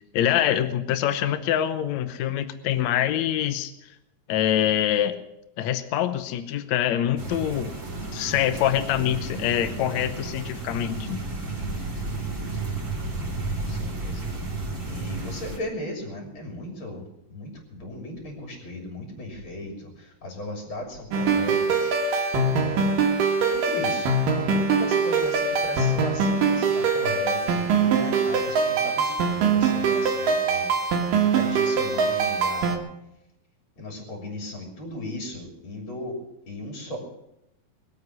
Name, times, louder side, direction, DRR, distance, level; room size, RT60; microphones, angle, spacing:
voice 1, 0.0-3.7 4.3-5.2 5.6-7.7 8.1-11.2, left 11 dB, 85° left, 10 dB, 1.6 m, -25 dB
sound 1, 7.2-15.6, right 3 dB, 20° right, 3.2 m, -32 dB
voice 2, 13.4-14.2 14.8-17.0 17.3-22.9 23.5-30.7 31.2-32.9 33.8-36.2 36.5-37.0, left 1 dB, 35° left, 1 dB, 3.4 m, -37 dB
sound 2, 21.1-32.8, right 4 dB, 65° right, 2.9 m, -23 dB
22.5 x 8.4 x 6.2 m, 0.84 s
omnidirectional pair, 4.4 m